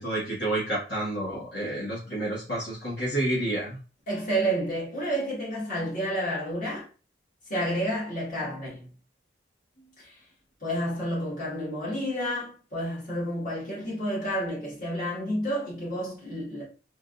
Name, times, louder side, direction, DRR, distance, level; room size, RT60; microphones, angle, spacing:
voice 1, 0.0-3.8, right 1 dB, 65° left, 1.4 m, -29 dB
voice 2, 4.1-6.8 7.5-8.9 10.0-10.2 10.6-16.6, equal, 45° left, 1.8 m, -30 dB
3.7 x 2.4 x 2.5 m
head